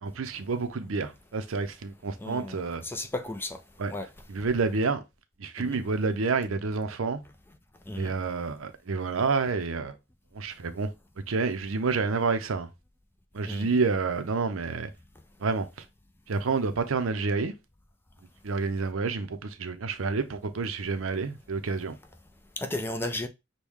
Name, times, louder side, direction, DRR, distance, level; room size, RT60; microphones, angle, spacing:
voice 1, 0.0-2.8 3.8-3.9 4.3-5.0 5.4-7.2 8.0-10.0 10.3-10.9 11.3-12.7 13.3-14.9 15.4-15.7 16.3-17.5 18.4-22.0, right 4 dB, 70° right, 0.6 m, -29 dB
voice 2, 2.2-3.6 3.9-4.1 5.6-5.8 7.9-8.1 13.4-13.7 22.6-23.3, left 1 dB, 10° left, 0.5 m, -34 dB
6.2 x 2.3 x 3.5 m
head